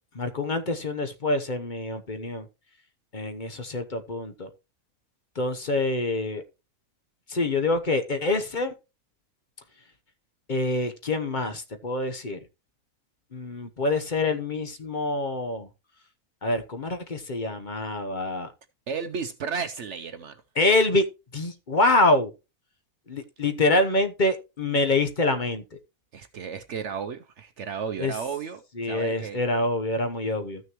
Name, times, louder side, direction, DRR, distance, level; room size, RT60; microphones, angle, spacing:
voice 1, 0.1-2.5 3.1-4.5 5.4-6.4 7.3-8.7 10.5-12.4 13.3-15.7 16.4-18.5 20.6-21.0 21.3-22.3 23.1-25.6 28.0-28.1 28.8-30.6, left 2 dB, 40° left, 0.9 m, -26 dB
voice 2, 18.9-20.4 26.1-29.4, right 6 dB, 60° right, 0.9 m, -33 dB
14.0 x 6.4 x 3.0 m
omnidirectional pair, 1.5 m